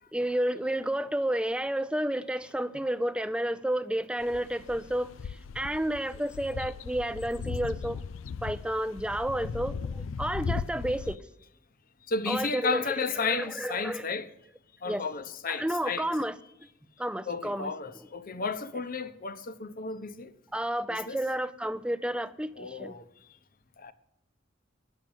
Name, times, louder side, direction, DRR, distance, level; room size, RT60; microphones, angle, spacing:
voice 1, 0.1-8.0 8.4-11.2 12.3-12.8 13.2-14.1 14.9-15.0 15.5-16.4 17.0-17.7 20.5-22.9, right 1 dB, 5° right, 0.5 m, -31 dB
sound 1, 4.2-11.2, left 5 dB, 85° left, 0.4 m, -37 dB
voice 2, 12.1-14.3 14.8-16.1 17.3-20.3 20.9-21.2 22.6-23.0 23.8-23.9, left 4 dB, 50° left, 0.9 m, -33 dB
10.5 x 7.4 x 9.0 m
head